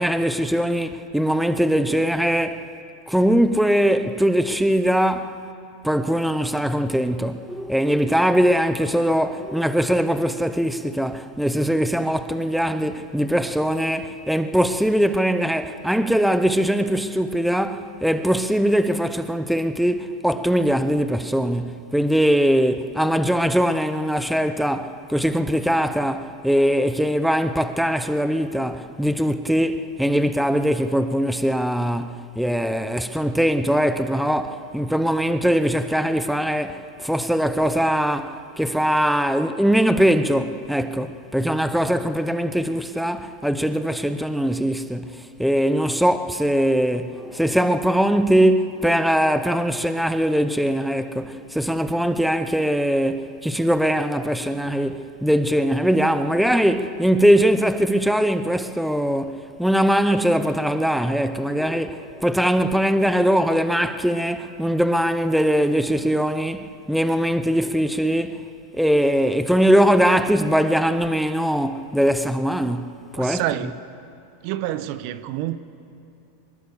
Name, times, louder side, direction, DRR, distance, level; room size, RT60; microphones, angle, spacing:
voice 1, 0.0-2.7 3.1-5.4 5.8-68.4 68.7-73.4, equal, ahead, 0.7 m, -21 dB
voice 2, 73.2-73.7 74.4-75.6, right 13 dB, 55° right, 1.0 m, -27 dB
23.5 x 20.5 x 7.0 m
supercardioid pair, 140°, 0 cm